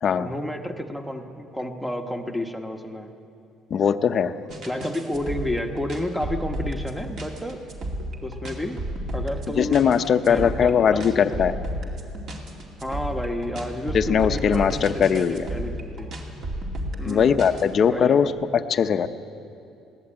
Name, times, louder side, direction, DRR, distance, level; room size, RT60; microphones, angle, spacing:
voice 1, 0.1-3.1 4.6-7.6 8.2-8.8 9.1-9.8 10.2-11.4 12.8-16.1 17.0-17.3 17.9-18.2, left 1 dB, ahead, 5 dB, 1.1 m, -31 dB
voice 2, 3.7-4.3 9.6-11.5 13.9-15.5 17.0-19.1, left 7 dB, 35° left, 10 dB, 0.7 m, -20 dB
sound 1, 4.5-17.6, right 1 dB, 45° right, 2.6 m, -32 dB
22.0 x 17.5 x 8.7 m, 2.7 s
cardioid pair, 170°, 0 cm